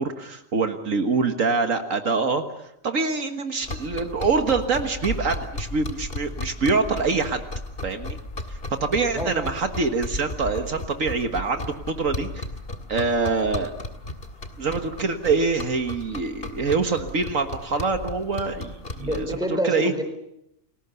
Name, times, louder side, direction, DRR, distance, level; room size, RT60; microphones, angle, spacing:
voice 1, 0.0-7.4 7.8-8.2 8.5-12.4 12.9-13.7 14.6-19.9, right 4 dB, 70° right, 6 dB, 1.9 m, -25 dB
sound 1, 3.6-19.4, left 2 dB, 45° left, 2.2 m, -35 dB
voice 2, 9.1-9.5 19.0-20.0, right 1 dB, 5° right, 6 dB, 4.4 m, -28 dB
29.5 x 20.5 x 7.0 m, 0.81 s
omnidirectional pair, 1.4 m